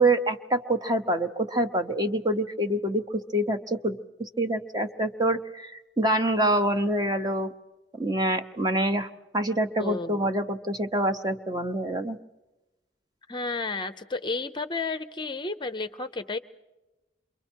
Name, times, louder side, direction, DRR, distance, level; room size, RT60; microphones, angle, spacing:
voice 1, 0.0-3.0 3.3-7.5 8.0-12.2, right 1 dB, 20° right, 7 dB, 0.9 m, -26 dB
voice 2, 9.8-10.3 13.3-16.4, left 3 dB, 25° left, 9 dB, 0.6 m, -32 dB
28.5 x 24.0 x 4.5 m, 1.0 s
head